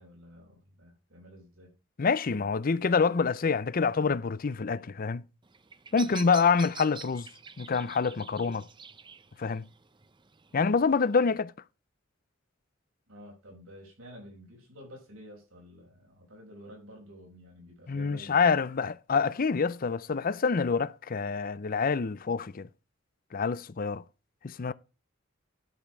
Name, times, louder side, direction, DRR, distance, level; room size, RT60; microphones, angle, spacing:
voice 1, 0.0-1.7 5.9-6.2 13.1-18.5, equal, 85° right, 5.8 m, -50 dB
voice 2, 2.0-5.2 5.9-7.3 7.6-8.7 9.4-9.6 10.5-11.5 17.9-22.7 23.3-24.0 24.4-24.7, left 5 dB, 45° left, 0.5 m, -26 dB
Bird vocalization bird call bird song, 5.4-11.4, right 6 dB, 25° right, 0.6 m, -48 dB
12.0 x 6.2 x 4.6 m
head